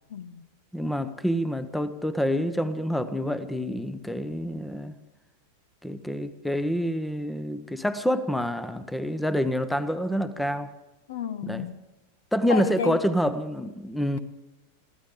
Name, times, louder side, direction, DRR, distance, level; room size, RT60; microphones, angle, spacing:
voice 1, 0.1-0.5 11.1-11.8 12.5-13.0, left 7 dB, 60° left, 1.0 m, -31 dB
voice 2, 0.7-4.9 5.8-10.7 11.4-11.7 12.3-14.2, equal, 5° left, 0.9 m, -27 dB
22.5 x 15.5 x 3.8 m
figure-of-eight pair, 90°, 0 cm